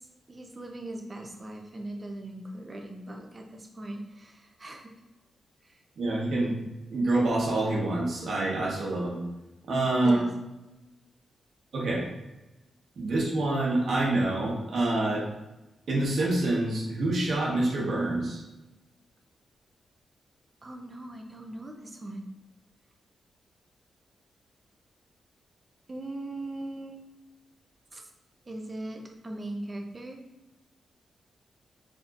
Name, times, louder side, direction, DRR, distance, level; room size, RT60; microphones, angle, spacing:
voice 1, 0.3-4.9 5.6-5.8 10.0-10.3 20.6-22.3 25.9-27.0 27.9-28.1 28.5-30.2, right 1 dB, 30° right, 2 dB, 0.7 m, -40 dB
voice 2, 6.0-6.6 6.9-9.2 9.7-10.2 11.7-12.1 13.0-15.2 15.9-18.4, right 2 dB, 65° right, -4 dB, 1.3 m, -26 dB
4.4 x 3.6 x 2.5 m, 1.0 s
cardioid pair, 110°, 0 cm